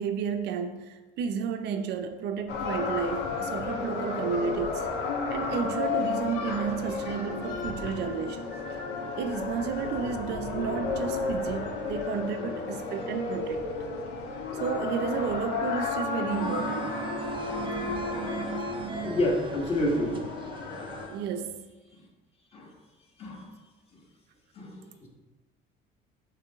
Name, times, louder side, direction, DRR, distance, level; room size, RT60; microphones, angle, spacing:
voice 1, 0.0-4.9 5.3-8.5 9.2-13.7 14.6-16.9 21.1-21.6, right 6 dB, 70° right, 7 dB, 0.6 m, -32 dB
sound 1, 2.5-21.1, left 4 dB, 75° left, 1.4 m, -33 dB
sound 2, 16.3-21.3, right 6 dB, 30° right, 0.5 m, -38 dB
voice 2, 19.0-20.2 22.5-22.7 23.2-23.5 24.5-25.1, left 1 dB, 35° left, -1 dB, 1.6 m, -28 dB
7.6 x 3.3 x 5.7 m, 1.2 s
cardioid pair, 145°, 18 cm